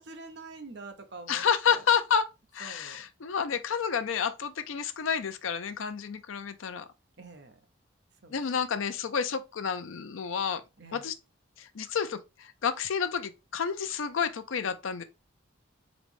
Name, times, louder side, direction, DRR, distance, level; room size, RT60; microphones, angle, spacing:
voice 1, 0.0-1.8 2.6-3.0 7.2-7.5 8.2-8.4 10.8-11.1, right 3 dB, 55° right, 0.7 m, -46 dB
voice 2, 1.3-2.3 2.5-6.8 8.3-10.6 10.9-11.1 11.6-15.0, left 7 dB, 80° left, 0.5 m, -30 dB
4.0 x 3.0 x 3.4 m
head